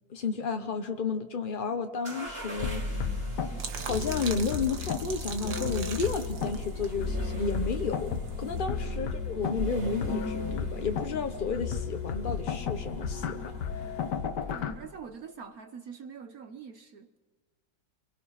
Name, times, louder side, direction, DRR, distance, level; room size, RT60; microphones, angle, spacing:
voice 1, 0.1-3.2 3.8-8.1 8.4-13.9, left 5 dB, 40° left, 0.7 m, -32 dB
sound 1, 2.0-14.9, right 1 dB, 30° right, 3.1 m, -39 dB
sound 2, 2.6-14.7, left 7 dB, 65° left, 1.6 m, -34 dB
sound 3, 3.6-8.6, right 6 dB, 75° right, 2.3 m, -41 dB
voice 2, 14.5-17.2, right 6 dB, 55° right, 1.3 m, -45 dB
27.0 x 22.5 x 5.8 m
omnidirectional pair, 2.1 m